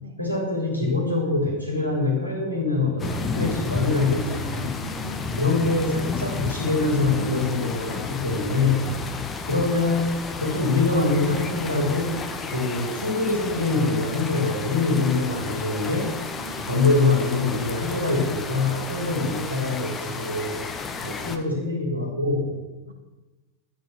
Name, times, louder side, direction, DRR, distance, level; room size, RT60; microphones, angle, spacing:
voice 1, 0.2-4.8 5.4-8.9 9.5-10.1 10.4-12.2 12.5-16.1 16.6-20.6 21.0-22.6, left 3 dB, 90° left, -1 dB, 3.2 m, -24 dB
sound 1, 3.0-21.4, left 4 dB, 20° left, 1.3 m, -32 dB
voice 2, 4.8-5.4 8.9-9.5 16.3-16.7 22.9-23.0, right 3 dB, 65° right, 6 dB, 1.8 m, -43 dB
12.0 x 8.3 x 7.9 m, 1.2 s
figure-of-eight pair, 90°, 0 cm